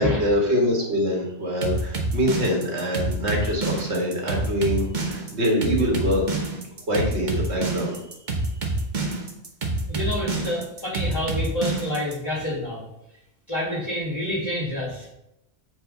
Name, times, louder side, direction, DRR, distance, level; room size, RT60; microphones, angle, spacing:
voice 1, 0.0-6.2 6.9-8.0, equal, 70° right, -1 dB, 2.1 m, -24 dB
sound 1, 1.6-12.1, right 3 dB, 45° right, 1.1 m, -27 dB
voice 2, 9.9-12.8 13.5-15.1, left 1 dB, 25° left, -7 dB, 2.1 m, -28 dB
7.2 x 4.9 x 4.0 m, 0.85 s
omnidirectional pair, 1.2 m